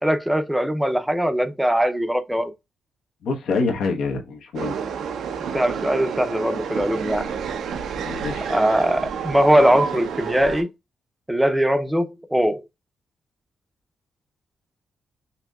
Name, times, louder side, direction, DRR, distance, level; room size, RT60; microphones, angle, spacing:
voice 1, 0.0-2.5 5.5-7.3 8.5-10.7 11.3-12.6, equal, 5° right, 0.6 m, -21 dB
voice 2, 3.2-4.8 8.0-8.5, left 4 dB, 85° left, 1.1 m, -26 dB
sound 1, 4.6-10.6, right 6 dB, 80° right, 0.7 m, -29 dB
5.8 x 2.7 x 2.4 m
cardioid pair, 115°, 0 cm